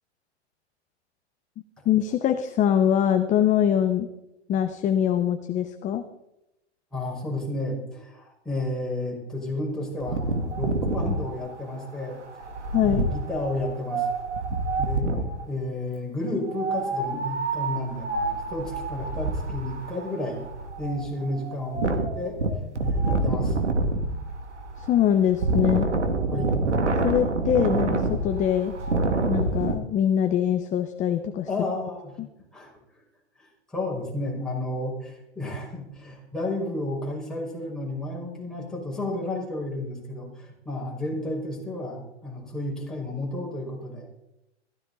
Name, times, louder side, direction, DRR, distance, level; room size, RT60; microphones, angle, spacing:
voice 1, 1.8-4.1 4.5-6.0 12.7-13.1 24.8-25.9 27.0-28.7 29.3-31.5 32.2-32.3, left 9 dB, 20° left, 8 dB, 0.9 m, -23 dB
voice 2, 6.9-12.2 12.8-14.1 14.8-15.1 15.5-20.4 20.8-22.4 22.8-23.6 26.3-26.5 31.5-32.1 32.5-32.7 33.4-44.1, left 1 dB, ahead, -3 dB, 5.7 m, -32 dB
Wind, 10.0-15.4 16.5-29.7, right 2 dB, 90° right, 2.5 m, -27 dB
16.5 x 15.0 x 4.2 m, 0.87 s
hypercardioid pair, 125°, 34 cm